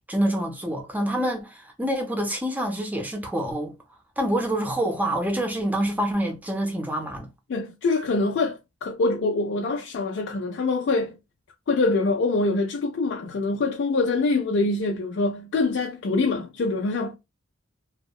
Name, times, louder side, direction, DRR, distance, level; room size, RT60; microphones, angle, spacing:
voice 1, 0.1-3.8 4.2-7.3, right 1 dB, 10° right, 0.5 m, -26 dB
voice 2, 7.5-11.2 11.7-17.1, left 3 dB, 60° left, 0.3 m, -24 dB
2.8 x 2.0 x 2.2 m
head